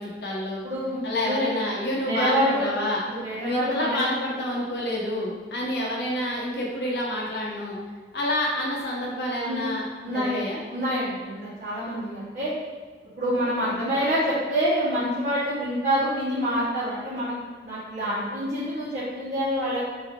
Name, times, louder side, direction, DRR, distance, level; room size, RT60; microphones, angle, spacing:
voice 1, 0.0-0.6 1.0-3.0 3.4-7.8 8.1-10.6, left 1 dB, 70° left, -4 dB, 1.1 m, -28 dB
voice 2, 0.6-1.5 2.0-2.7 3.1-4.0 9.4-9.6 10.0-10.4 10.7-12.5 13.2-17.3 17.6-19.8, equal, 55° right, -13 dB, 1.3 m, -26 dB
4.3 x 2.8 x 3.7 m, 1.5 s
head